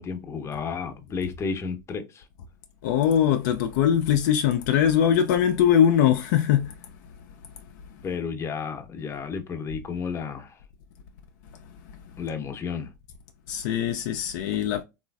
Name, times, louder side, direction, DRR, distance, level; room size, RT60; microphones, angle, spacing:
voice 1, 0.0-2.3 8.0-10.6 12.2-12.9, left 5 dB, 25° left, 0.6 m, -32 dB
voice 2, 2.8-6.7 13.5-14.8, left 9 dB, 65° left, 0.4 m, -21 dB
3.1 x 2.4 x 2.2 m
hypercardioid pair, 95°, 10 cm